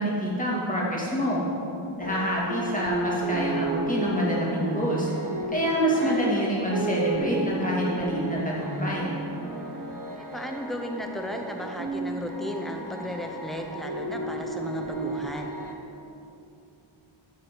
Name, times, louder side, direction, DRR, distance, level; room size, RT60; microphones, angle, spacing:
voice 1, 0.0-1.4 2.0-5.1 5.5-9.1, equal, 15° left, -5 dB, 1.9 m, -26 dB
sound 1, 2.0-15.7, right 2 dB, 40° right, 0.9 m, -33 dB
voice 2, 5.9-6.3 10.1-15.5, left 1 dB, ahead, 3 dB, 0.6 m, -35 dB
11.5 x 4.1 x 4.5 m, 2.8 s
wide cardioid pair, 90°, 48 cm